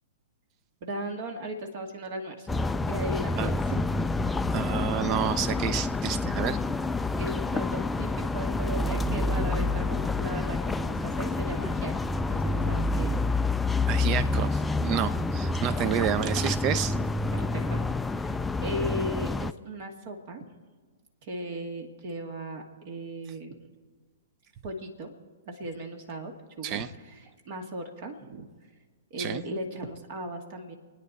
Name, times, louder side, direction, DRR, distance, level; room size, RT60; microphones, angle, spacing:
voice 1, 0.8-2.5 2.9-3.8 7.2-11.9 12.3-13.2 17.3-17.9 18.2-20.4 21.2-23.6 24.6-25.1 25.5-28.5 29.1-30.7, right 1 dB, 50° right, 3 dB, 2.2 m, -37 dB
sound 1, 2.5-19.5, left 3 dB, 10° left, 0.4 m, -28 dB
voice 2, 4.5-6.6 13.9-17.0 26.6-26.9 29.2-29.4, right 9 dB, 35° right, 14 dB, 0.8 m, -29 dB
28.5 x 9.8 x 4.3 m, 1.4 s
hypercardioid pair, 115°, 0 cm